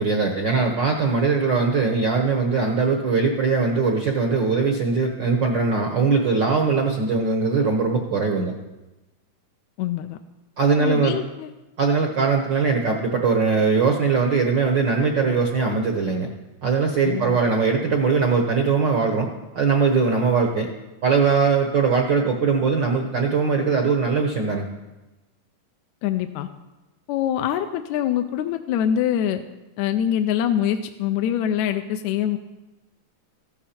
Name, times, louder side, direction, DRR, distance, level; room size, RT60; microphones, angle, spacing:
voice 1, 0.0-8.5 10.6-11.2 11.8-16.3 16.6-19.3 19.5-20.7 21.0-24.7, right 4 dB, 65° right, 2 dB, 1.1 m, -21 dB
voice 2, 9.8-10.2 10.8-11.5 17.0-17.4 26.0-26.5 27.1-29.4 29.8-32.4, left 10 dB, 80° left, 7 dB, 1.9 m, -24 dB
15.0 x 12.0 x 4.4 m, 1.1 s
omnidirectional pair, 3.5 m